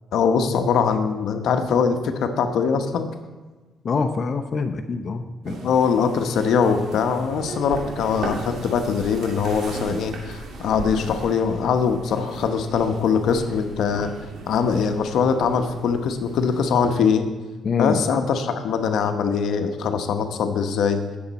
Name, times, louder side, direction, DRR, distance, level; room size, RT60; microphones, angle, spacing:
voice 1, 0.1-3.1 5.6-14.1 14.5-17.3 17.8-21.0, left 6 dB, 75° left, 7 dB, 1.0 m, -22 dB
voice 2, 3.8-5.6 17.6-18.0, left 5 dB, 45° left, 6 dB, 0.9 m, -25 dB
sound 1, 5.4-17.0, right 3 dB, 75° right, 2.6 m, -37 dB
17.5 x 7.1 x 4.2 m, 1.3 s
cardioid pair, 90°, 0 cm